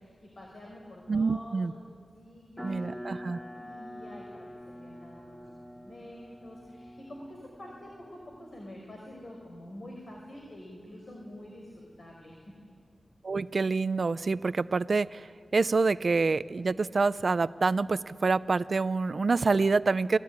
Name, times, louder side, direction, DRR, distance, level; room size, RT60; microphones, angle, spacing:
voice 1, 0.0-1.8 2.1-12.6, left 1 dB, 55° left, -1 dB, 5.4 m, -47 dB
voice 2, 1.1-1.7 2.6-3.4 13.2-20.2, right 4 dB, 55° right, 15 dB, 0.6 m, -27 dB
sound 1, 2.6-8.8, equal, 5° left, 1.3 m, -45 dB
29.0 x 21.0 x 9.7 m, 2.1 s
wide cardioid pair, 110°, 0 cm